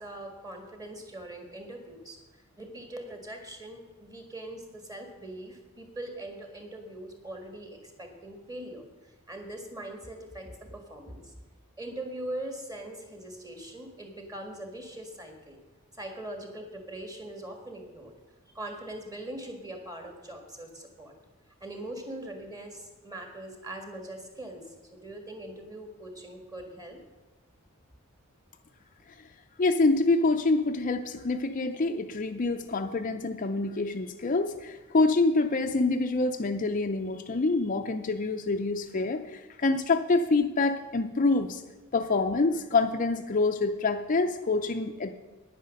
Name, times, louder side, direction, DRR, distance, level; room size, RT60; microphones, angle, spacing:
voice 1, 0.0-2.2 2.6-8.9 9.3-11.4 11.8-15.6 16.0-18.1 18.5-21.1 21.6-27.0, right 1 dB, 15° right, 4 dB, 1.8 m, -41 dB
voice 2, 29.6-41.6 41.9-45.1, left 3 dB, 35° left, 6 dB, 0.5 m, -26 dB
9.9 x 9.6 x 6.5 m, 1.2 s
head